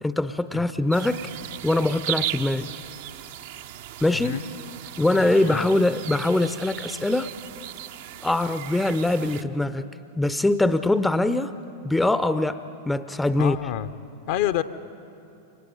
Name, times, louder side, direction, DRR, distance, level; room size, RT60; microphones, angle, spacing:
voice 1, 0.0-1.3 1.6-2.7 4.0-4.4 5.0-7.3 8.2-9.9 10.2-11.5 11.8-13.6, left 2 dB, 5° left, 14 dB, 0.6 m, -23 dB
sound 1, 0.9-9.4, right 12 dB, 55° right, 0.6 m, -36 dB
voice 2, 4.1-4.4 5.1-5.7 13.4-13.9 14.3-14.6, left 13 dB, 50° left, 12 dB, 0.7 m, -28 dB
29.0 x 25.5 x 5.4 m, 2.7 s
figure-of-eight pair, 90°, 0 cm